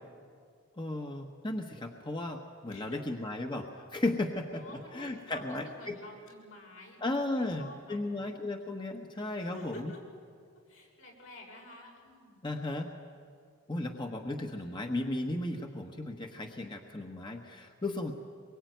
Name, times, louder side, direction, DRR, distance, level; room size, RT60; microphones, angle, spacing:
voice 1, 0.8-4.6 4.9-5.9 7.0-9.9 12.4-12.9 13.7-18.1, left 2 dB, 25° left, 3 dB, 1.3 m, -35 dB
voice 2, 2.7-3.0 4.5-8.2 9.4-10.0 10.7-12.4, left 1 dB, 75° left, -1 dB, 6.7 m, -50 dB
24.5 x 22.5 x 9.3 m, 2.2 s
head